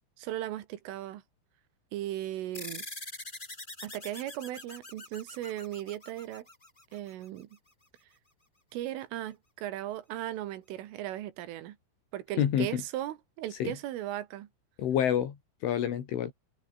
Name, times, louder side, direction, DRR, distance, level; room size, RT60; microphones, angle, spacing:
voice 1, 0.2-1.2 1.9-2.9 3.8-6.5 6.9-7.5 8.7-11.8 12.1-14.5, right 13 dB, 85° right, 4.3 m, -37 dB
sound 1, 2.5-7.4, left 2 dB, 10° left, 3.7 m, -44 dB
voice 2, 12.4-12.8 13.5-13.7 14.8-15.4 15.6-16.3, left 9 dB, 75° left, 5.4 m, -28 dB
omnidirectional pair, 5.6 m